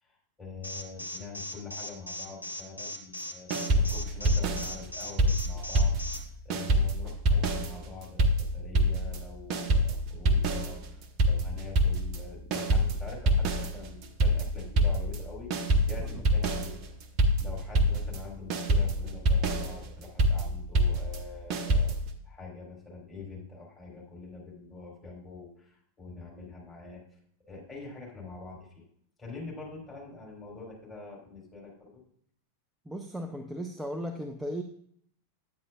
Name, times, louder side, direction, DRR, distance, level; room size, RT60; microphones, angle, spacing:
voice 1, 0.0-5.9 6.2-16.9 17.4-27.2 27.5-28.8 29.2-32.0, left 4 dB, 15° left, -4 dB, 3.9 m, -45 dB
Alarm, 0.6-6.2, left 1 dB, 85° left, 0.9 m, -38 dB
sound 1, 3.5-6.2 6.5-22.1, equal, 40° right, 0.8 m, -26 dB
voice 2, 32.9-34.6, equal, 5° right, 4 dB, 0.5 m, -36 dB
9.5 x 9.1 x 2.4 m, 0.66 s
figure-of-eight pair, 90°, 0 cm